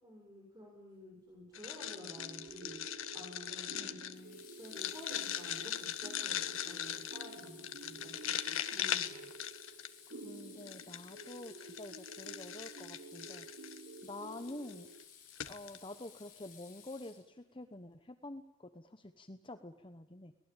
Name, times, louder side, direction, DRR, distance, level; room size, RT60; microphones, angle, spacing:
voice 1, 0.0-2.8 3.1-4.0 4.6-8.3 8.7-9.2, left 1 dB, 20° right, -2 dB, 6.8 m, -52 dB
sound 1, 1.5-10.1 10.7-13.8 14.5-14.7 15.0-15.1 15.3-15.8, left 10 dB, 85° left, 1.5 m, -40 dB
sound 2, 1.8-15.1, right 2 dB, 60° right, 1.5 m, -51 dB
Water tap faucet / Sink (filling or washing), 2.5-2.8 4.1-17.6, left 8 dB, 40° left, 7.9 m, -58 dB
voice 2, 3.7-4.5 8.7-9.1 10.1-13.5 14.0-14.9 15.5-20.3, left 2 dB, 25° left, 8 dB, 1.0 m, -48 dB
24.5 x 19.5 x 9.0 m, 1.0 s
head